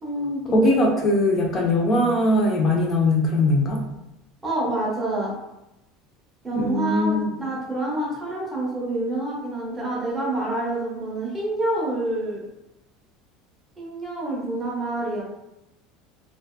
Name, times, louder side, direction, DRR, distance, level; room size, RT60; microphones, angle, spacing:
voice 1, 0.0-0.7 4.4-5.3 6.4-12.4 13.8-15.2, right 2 dB, 10° right, -6 dB, 0.8 m, -27 dB
voice 2, 0.5-3.8 6.5-7.3, left 1 dB, 25° left, 0 dB, 0.4 m, -20 dB
2.6 x 2.1 x 2.2 m, 0.90 s
cardioid pair, 155°, 0 cm